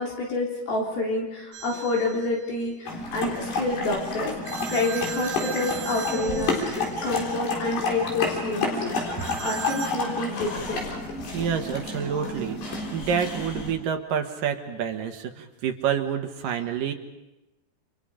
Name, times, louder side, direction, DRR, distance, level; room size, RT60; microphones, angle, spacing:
voice 1, 0.0-10.9, left 2 dB, 70° left, -2 dB, 5.5 m, -28 dB
sound 1, 1.5-2.3 4.5-7.1 9.2-10.0, right 8 dB, 50° right, 3.3 m, -37 dB
sound 2, 2.9-13.7, left 2 dB, 85° left, 6.1 m, -31 dB
Laughter, 6.6-13.1, left 3 dB, 40° left, 3.5 m, -39 dB
voice 2, 11.3-16.9, right 7 dB, 65° right, 4 dB, 2.9 m, -28 dB
30.0 x 28.0 x 5.1 m, 1.0 s
omnidirectional pair, 4.6 m